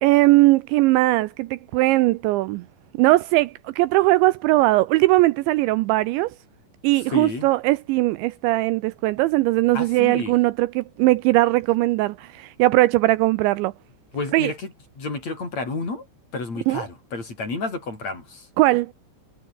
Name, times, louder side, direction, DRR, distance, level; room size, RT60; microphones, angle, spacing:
voice 1, 0.0-2.6 3.0-6.3 6.8-13.7 14.3-14.5 16.7-16.8 18.6-18.9, right 19 dB, 90° right, 2.6 m, -19 dB
voice 2, 7.1-7.5 9.7-10.4 14.1-16.1 16.3-18.5, left 3 dB, 30° left, 7.2 m, -31 dB
omnidirectional pair, 6.0 m